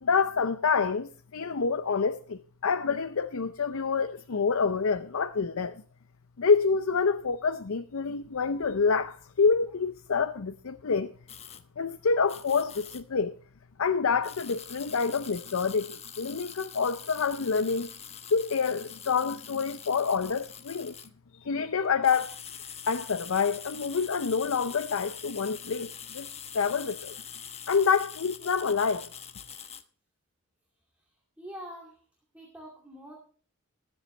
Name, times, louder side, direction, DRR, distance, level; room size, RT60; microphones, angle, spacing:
voice 1, 0.0-5.8 6.4-11.1 11.8-13.3 13.8-17.9 18.3-20.9 21.3-22.3 22.9-26.3 26.5-27.1 27.7-29.1, left 5 dB, 70° left, 0.6 m, -27 dB
sound 1, 11.3-11.6 12.3-13.0 14.2-21.1 21.8-29.8, left 8 dB, 30° left, 1.0 m, -44 dB
voice 2, 31.0-32.0 32.3-33.1, equal, 5° right, 2.4 m, -45 dB
20.0 x 7.9 x 3.2 m
head